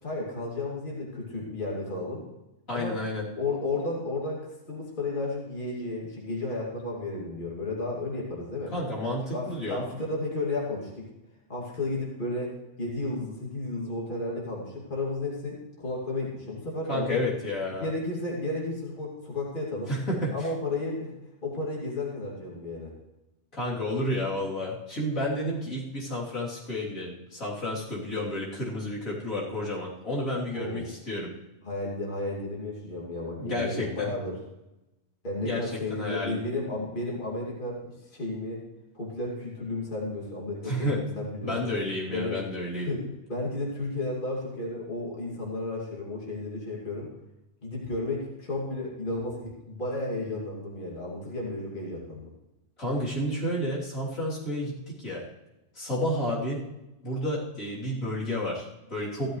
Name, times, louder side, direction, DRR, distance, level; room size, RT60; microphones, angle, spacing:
voice 1, 0.0-2.3 2.7-3.0 3.4-8.7 9.3-11.1 11.5-17.2 17.7-19.9 20.3-21.2 21.4-22.9 30.5-30.9 31.6-34.4 35.2-38.6 38.9-41.5 42.1-42.4 42.7-47.1 47.6-52.3, left 2 dB, 40° left, -3 dB, 2.7 m, -33 dB
voice 2, 2.7-3.2 8.7-9.9 16.9-17.9 19.9-20.5 23.5-31.3 33.4-34.1 35.4-35.6 35.9-36.4 40.6-41.0 41.4-42.9 52.8-55.2 55.7-56.6 57.0-59.4, left 1 dB, 80° left, -7 dB, 3.8 m, -31 dB
15.5 x 13.0 x 3.2 m, 0.96 s
omnidirectional pair, 1.4 m